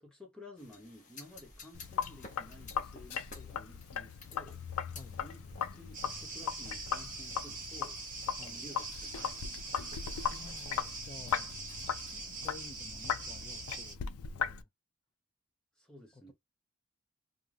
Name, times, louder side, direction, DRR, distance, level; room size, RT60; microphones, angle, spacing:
voice 1, 0.0-4.6 5.2-5.4 5.7-8.0 8.4-10.1 15.8-16.3, left 1 dB, 5° left, 0.8 m, -54 dB
sound 1, 0.6-11.0, left 3 dB, 35° left, 0.7 m, -54 dB
Sink (filling or washing), 1.7-14.6, left 8 dB, 85° left, 0.4 m, -38 dB
sound 2, 5.9-13.9, right 3 dB, 35° right, 0.9 m, -43 dB
voice 2, 10.3-11.6 12.1-14.7 16.1-16.3, left 3 dB, 20° left, 0.3 m, -53 dB
2.5 x 2.1 x 3.2 m
head